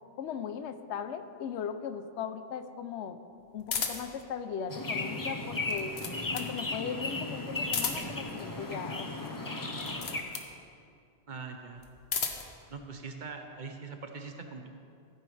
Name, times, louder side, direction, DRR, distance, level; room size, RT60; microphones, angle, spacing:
voice 1, 0.2-3.2 3.5-5.9 6.3-10.2, left 7 dB, 90° left, 10 dB, 0.9 m, -38 dB
sound 1, 3.7-4.2 5.5-6.6 7.6-8.3 9.7-10.5 11.8-12.5, left 6 dB, 70° left, 1.1 m, -34 dB
sound 2, 4.7-10.2, left 2 dB, 20° left, 0.7 m, -35 dB
voice 2, 11.3-11.8 12.7-14.7, right 4 dB, 50° right, 5 dB, 0.9 m, -42 dB
14.5 x 9.2 x 3.3 m, 2.4 s
omnidirectional pair, 1.1 m